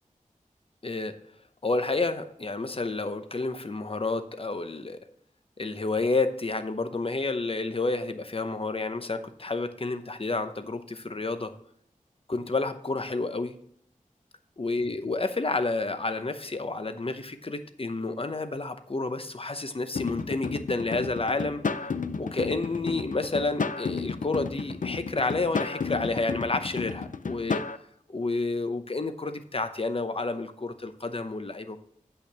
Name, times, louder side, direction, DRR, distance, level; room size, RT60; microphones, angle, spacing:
voice 1, 0.8-1.2 1.6-5.0 5.6-11.5 12.3-13.6 14.6-21.6 22.2-27.6 28.1-31.8, left 3 dB, 40° left, 9 dB, 0.8 m, -30 dB
sound 1, 20.0-27.8, left 5 dB, 70° left, 0.5 m, -32 dB
8.5 x 5.6 x 6.1 m, 0.68 s
wide cardioid pair, 65°, 14 cm